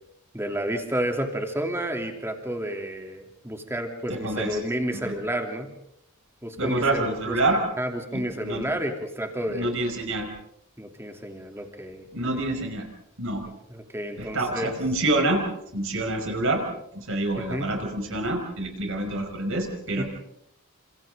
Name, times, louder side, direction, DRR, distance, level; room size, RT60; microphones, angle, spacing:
voice 1, 0.3-5.7 6.4-7.4 7.8-9.7 10.8-12.1 13.7-14.8 17.4-17.7 20.0-20.1, equal, 10° right, 3 dB, 3.1 m, -30 dB
voice 2, 4.1-4.6 4.9-5.1 6.6-7.6 8.1-8.6 9.5-10.3 12.1-12.9 13.2-13.5 14.2-15.5 15.7-16.6 16.9-20.0, right 2 dB, 65° right, 3 dB, 5.5 m, -27 dB
29.5 x 27.0 x 3.8 m, 0.76 s
head